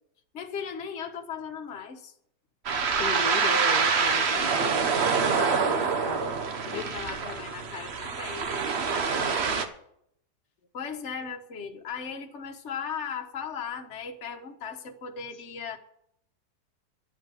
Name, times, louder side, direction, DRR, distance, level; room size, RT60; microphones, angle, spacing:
voice 1, 0.3-2.1 5.3-6.2 6.7-8.7 10.7-15.8, left 6 dB, 45° left, 4 dB, 1.4 m, -37 dB
sound 1, 2.6-9.6, right 5 dB, 45° right, 1.1 m, -26 dB
voice 2, 3.0-6.3 6.7-6.9, left 4 dB, 70° left, 6 dB, 1.5 m, -36 dB
12.0 x 9.0 x 8.0 m, 0.73 s
omnidirectional pair, 1.8 m